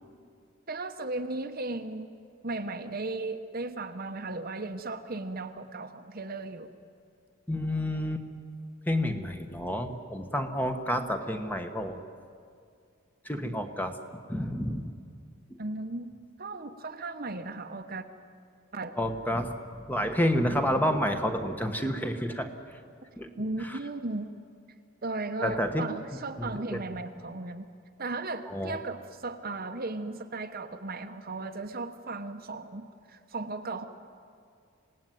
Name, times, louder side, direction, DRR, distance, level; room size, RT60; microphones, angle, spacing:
voice 1, 0.7-2.1 2.4-6.7 13.4-13.5 15.6-16.1 16.4-18.1 18.7-19.0 23.4-24.3 25.0-27.7 28.0-33.9, right 2 dB, 45° right, 7 dB, 1.0 m, -36 dB
voice 2, 7.5-8.2 8.9-12.0 13.2-14.0 14.3-14.9 15.5-15.6 19.0-22.5 23.2-23.3 23.6-23.8 25.4-25.8 26.4-26.8 28.5-28.8, equal, 10° left, 6 dB, 1.3 m, -29 dB
26.5 x 18.0 x 9.3 m, 2.3 s
head